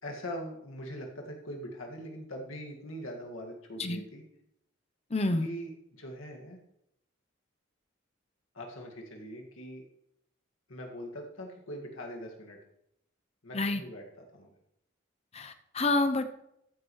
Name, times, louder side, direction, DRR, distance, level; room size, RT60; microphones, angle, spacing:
voice 1, 0.0-4.2 5.4-6.6 8.5-9.8 10.7-12.6 13.4-14.5, equal, 90° left, 0 dB, 2.0 m, -42 dB
voice 2, 5.1-5.5 13.5-13.8 15.3-16.3, left 2 dB, 30° left, 8 dB, 0.7 m, -28 dB
14.0 x 9.8 x 3.2 m, 0.81 s
head